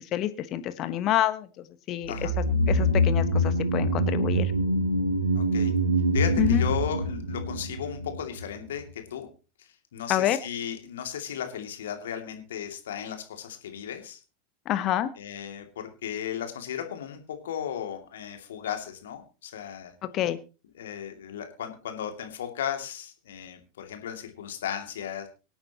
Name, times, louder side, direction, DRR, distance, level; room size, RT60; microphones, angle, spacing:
voice 1, 0.0-1.5 1.9-2.1 2.7-4.5 6.4-6.6 10.1-10.4 14.6-15.1 20.0-20.4, left 12 dB, 40° left, 11 dB, 1.3 m, -27 dB
sound 1, 2.1-8.5 8.7-8.8, equal, 85° right, 1.4 m, -25 dB
voice 2, 5.3-5.7 6.1-9.3 9.6-14.2 15.2-19.9 20.8-25.3, left 9 dB, 65° left, 5 dB, 2.5 m, -35 dB
24.5 x 8.8 x 3.0 m, 0.32 s
figure-of-eight pair, 85°, 0 cm